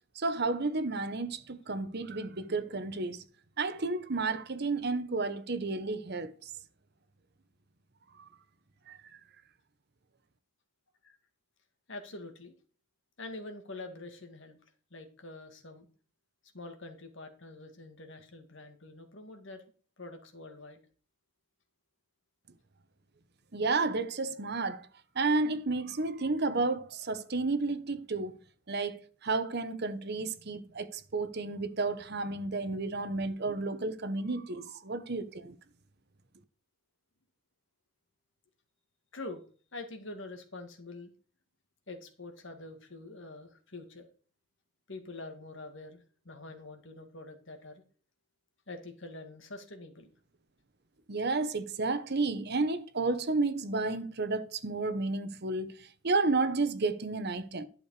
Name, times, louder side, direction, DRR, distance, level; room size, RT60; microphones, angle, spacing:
voice 1, 0.1-3.2 3.6-6.5 8.1-8.3 8.9-9.0 23.5-24.9 25.1-28.4 28.7-35.5 51.1-57.6, right 3 dB, 50° right, 1.0 m, -32 dB
voice 2, 11.9-12.6 13.2-14.6 14.9-15.9 16.5-19.6 20.0-20.8 32.6-32.7 39.1-39.4 39.7-41.1 41.9-44.1 44.9-46.0 46.2-47.8 48.7-50.1, left 2 dB, 60° left, 2.0 m, -45 dB
11.5 x 6.7 x 4.8 m
head